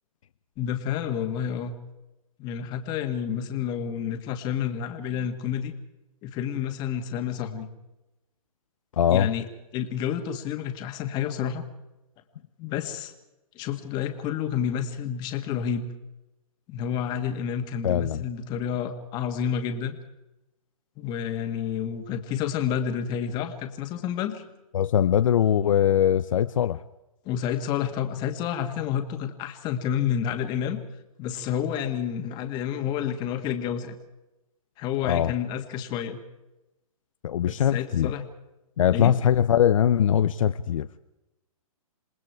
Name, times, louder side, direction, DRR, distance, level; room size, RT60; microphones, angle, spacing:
voice 1, 0.6-1.7 2.4-5.7 6.2-7.7 9.1-9.5 9.7-11.6 12.6-13.1 13.6-15.9 16.7-20.0 21.0-24.4 27.3-30.8 31.2-34.0 34.8-36.2 37.4-38.2 38.9-39.2, left 8 dB, 25° left, 6 dB, 2.0 m, -29 dB
voice 2, 9.0-9.3 17.8-18.2 24.7-26.8 35.0-35.3 37.2-38.1 38.8-40.9, left 9 dB, 60° left, 11 dB, 0.8 m, -21 dB
28.0 x 19.5 x 4.7 m, 0.97 s
hypercardioid pair, 155°, 19 cm